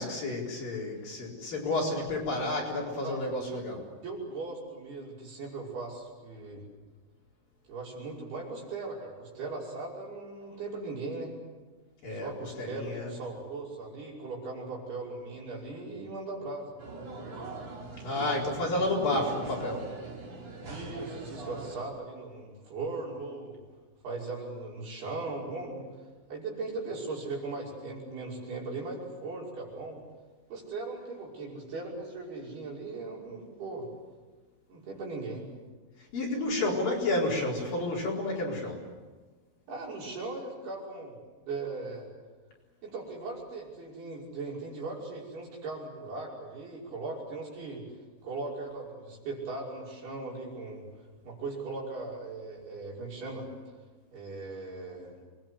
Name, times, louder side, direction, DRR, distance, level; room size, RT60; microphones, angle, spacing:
voice 1, 0.0-3.8 12.0-12.3 12.6-13.1 18.0-19.9 36.1-38.8, left 2 dB, 45° left, -3 dB, 5.9 m, -30 dB
voice 2, 3.0-3.6 4.0-6.7 7.7-11.3 12.1-16.7 20.6-23.6 24.0-25.9 26.3-30.0 30.5-33.9 34.7-35.5 39.7-41.2 41.4-42.1 42.8-47.9 48.2-50.8 51.2-53.5 54.1-55.1, right 3 dB, 55° right, -3 dB, 7.6 m, -38 dB
sound 1, 16.8-21.8, right 3 dB, 35° right, 3.8 m, -41 dB
27.0 x 21.5 x 8.1 m, 1.3 s
omnidirectional pair, 5.7 m